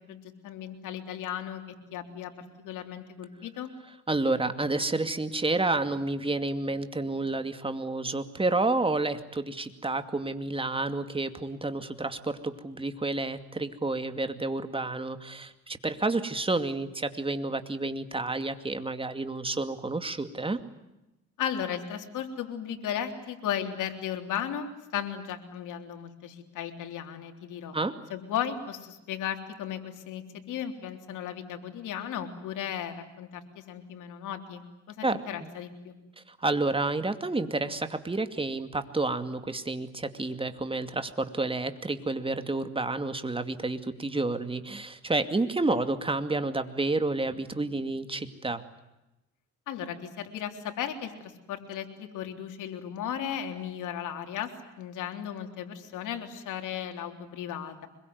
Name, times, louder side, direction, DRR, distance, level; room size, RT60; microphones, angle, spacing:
voice 1, 0.1-2.3 2.6-3.7 21.4-27.7 28.1-35.9 49.7-54.5 54.8-57.9, left 9 dB, 85° left, 5 dB, 3.6 m, -35 dB
voice 2, 4.1-20.6 27.7-28.0 35.0-35.2 36.2-48.6, right 2 dB, 20° right, 9 dB, 2.5 m, -30 dB
25.0 x 22.5 x 9.6 m, 0.96 s
cardioid pair, 90°, 30 cm